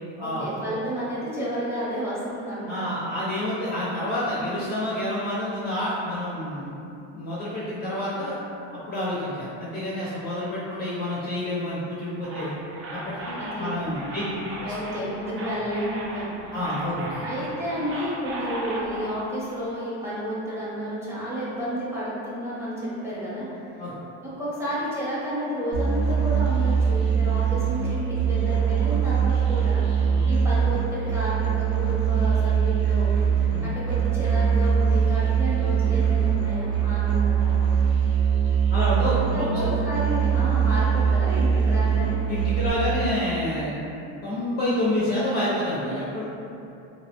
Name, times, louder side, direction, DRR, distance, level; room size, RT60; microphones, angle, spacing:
voice 1, 0.2-2.9 4.2-4.6 13.3-16.4 17.2-23.7 24.2-33.1 33.4-37.5 39.2-42.2, equal, 5° right, -9 dB, 0.7 m, -31 dB
voice 2, 2.7-6.7 7.1-8.3 8.9-12.5 13.1-14.2 14.6-14.7 16.5-17.2 23.8-24.0 30.1-30.2 33.5-33.6 38.7-39.8 42.3-43.8 44.2-46.2, left 1 dB, 30° left, -8 dB, 0.5 m, -28 dB
sound 1, 12.2-19.1, right 1 dB, 40° right, 0.5 m, -36 dB
Musical instrument, 25.7-42.7, right 7 dB, 75° right, 0.8 m, -22 dB
2.8 x 2.0 x 2.8 m, 2.8 s
supercardioid pair, 115°, 35 cm